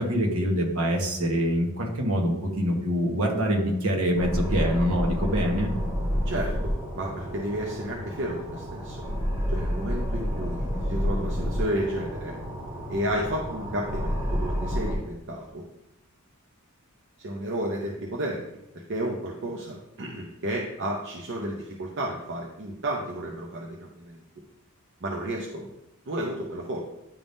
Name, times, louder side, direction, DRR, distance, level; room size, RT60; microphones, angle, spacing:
voice 1, 0.0-5.7, equal, 70° right, 1 dB, 1.2 m, -25 dB
sound 1, 4.1-15.0, equal, 25° right, 2.0 m, -30 dB
voice 2, 6.3-9.0 9.5-12.3 12.9-15.6 17.2-18.6 18.9-24.2 25.0-25.7 26.1-26.8, right 1 dB, 55° right, -1 dB, 0.7 m, -32 dB
10.5 x 3.6 x 2.6 m, 0.89 s
head